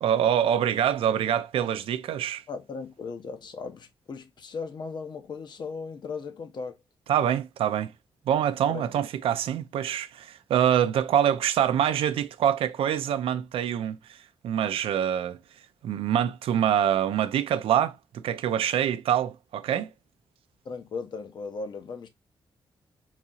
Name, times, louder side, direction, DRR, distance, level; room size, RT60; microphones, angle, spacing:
voice 1, 0.0-2.4 7.1-7.9 8.3-14.2 14.4-15.4 15.8-19.9, right 9 dB, 85° right, 0.4 m, -25 dB
voice 2, 2.5-6.8 8.7-9.0 20.6-22.1, left 4 dB, 55° left, 0.7 m, -37 dB
3.9 x 2.8 x 2.3 m
cardioid pair, 105°, 9 cm